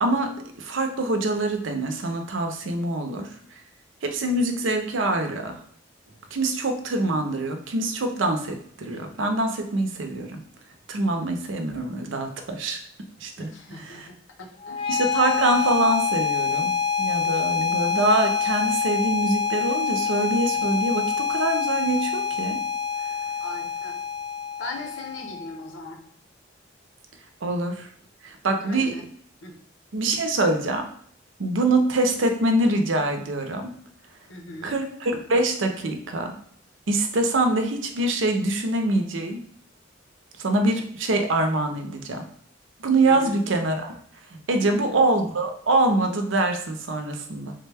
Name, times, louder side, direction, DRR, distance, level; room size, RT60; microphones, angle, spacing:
voice 1, 0.0-3.3 4.0-5.6 6.3-10.4 10.9-12.8 13.2-13.5 13.8-14.1 14.9-22.6 27.4-27.9 28.2-28.9 29.9-30.9 31.4-33.7 34.6-36.4 36.9-39.4 40.4-42.3 42.8-44.0 44.5-47.5, right 2 dB, 90° right, 5 dB, 0.6 m, -24 dB
voice 2, 13.4-14.9 23.4-24.0 24.6-26.0 28.6-29.1 29.4-29.5 34.3-34.7 43.1-43.4 44.6-45.0, left 2 dB, 85° left, 2 dB, 0.8 m, -39 dB
sound 1, 14.6-25.6, left 6 dB, 25° left, 0.3 m, -26 dB
3.5 x 2.2 x 3.3 m, 0.62 s
head